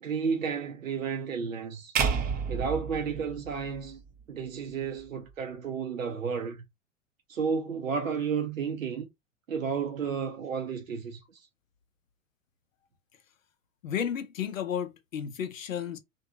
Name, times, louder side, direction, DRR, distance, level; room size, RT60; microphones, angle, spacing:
voice 1, 0.0-2.0 2.5-4.0 4.3-6.6 7.3-9.1 9.5-11.5, right 6 dB, 90° right, 0.6 m, -32 dB
sound 1, 2.0-4.2, right 6 dB, 25° right, 0.5 m, -30 dB
voice 2, 13.8-16.0, left 8 dB, 80° left, 0.6 m, -32 dB
2.5 x 2.2 x 2.7 m
figure-of-eight pair, 90°, 39 cm